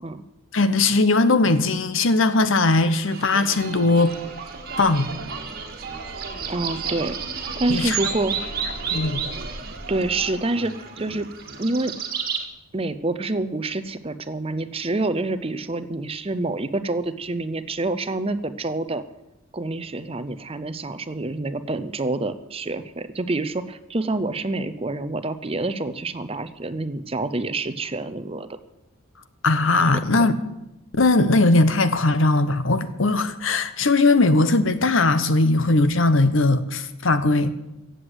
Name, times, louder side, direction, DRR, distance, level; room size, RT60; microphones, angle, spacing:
voice 1, 0.5-4.2 4.8-5.1 7.7-8.0 8.9-9.2 29.4-30.3 31.0-37.5, left 2 dB, 60° left, 12 dB, 0.9 m, -19 dB
sound 1, 2.8-12.4, right 5 dB, 45° right, 1.9 m, -32 dB
voice 2, 6.5-7.2 7.6-8.3 9.9-11.3 11.6-11.9 12.7-19.0 19.5-28.6, right 2 dB, 25° right, 12 dB, 0.6 m, -27 dB
15.5 x 7.9 x 8.1 m, 0.92 s
head